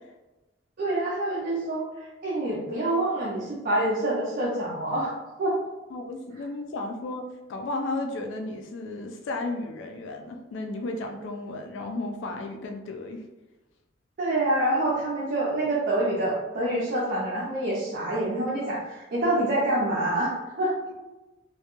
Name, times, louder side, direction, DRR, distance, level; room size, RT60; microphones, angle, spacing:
voice 1, 0.8-5.1 5.4-5.6 14.2-20.8, right 1 dB, 55° right, -6 dB, 0.5 m, -26 dB
voice 2, 5.9-7.2 7.5-13.2, left 2 dB, 85° left, 3 dB, 0.3 m, -33 dB
2.2 x 2.2 x 2.9 m, 1.1 s
head